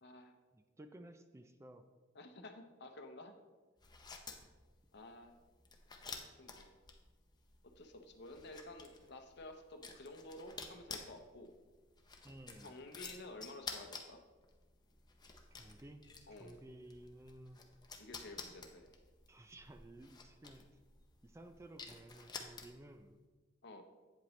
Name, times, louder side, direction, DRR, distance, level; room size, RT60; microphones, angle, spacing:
voice 1, 0.0-0.4 2.1-3.4 4.9-5.4 6.2-6.7 7.8-11.6 12.6-14.2 16.3-16.6 18.0-18.9 23.6-23.8, left 2 dB, 60° left, 6 dB, 0.8 m, -52 dB
voice 2, 0.5-1.8 12.2-12.7 15.5-16.1 16.4-17.6 19.3-20.6 21.2-23.2, right 1 dB, 15° right, 8 dB, 0.4 m, -55 dB
sound 1, 3.8-23.0, left 4 dB, 20° left, 0.7 m, -52 dB
8.4 x 7.8 x 3.1 m, 1.3 s
head